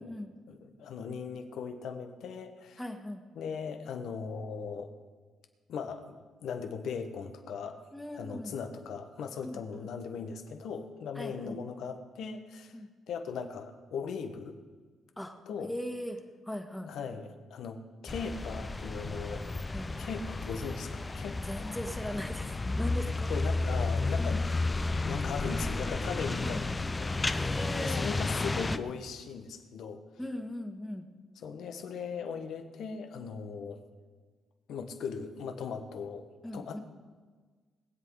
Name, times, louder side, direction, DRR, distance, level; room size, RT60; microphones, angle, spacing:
voice 1, 0.5-2.8 3.3-4.9 5.7-7.8 8.1-12.8 13.1-14.5 15.5-15.7 16.8-19.5 20.0-21.4 23.3-24.4 25.0-27.5 27.7-30.0 31.4-33.8 34.7-36.3 36.5-36.8, left 6 dB, 75° left, 6 dB, 1.4 m, -39 dB
voice 2, 2.8-3.2 7.9-8.5 9.4-9.9 11.1-11.6 12.7-12.9 15.2-15.4 15.7-16.2 16.4-16.9 19.7-19.9 21.4-23.3 24.2-24.4 26.4-26.6 27.3-28.1 30.2-31.0 36.4-36.8, left 1 dB, 5° left, 4 dB, 1.7 m, -39 dB
sound 1, 18.1-28.8, left 3 dB, 20° left, 0.7 m, -32 dB
21.0 x 8.2 x 4.8 m, 1.5 s
cardioid pair, 90°, 0 cm